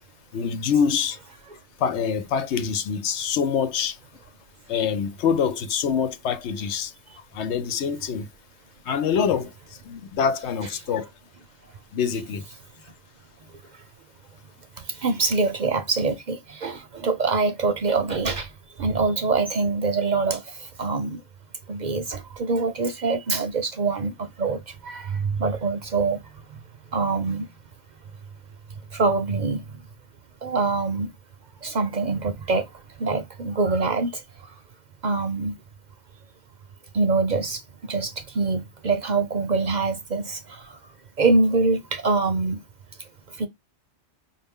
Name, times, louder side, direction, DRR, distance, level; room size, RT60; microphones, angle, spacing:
voice 1, 0.3-1.2 1.8-4.0 4.7-6.9 7.3-8.3 8.8-11.1 11.9-12.4, left 7 dB, 80° left, 0.9 m, -25 dB
voice 2, 14.8-21.2 21.7-26.6 26.9-27.5 28.9-29.9 30.4-31.1 31.6-34.5 35.0-35.6 36.9-40.8 41.2-42.6 43.0-43.5, right 3 dB, 50° right, 0.6 m, -25 dB
5.2 x 2.5 x 3.5 m
omnidirectional pair, 1.1 m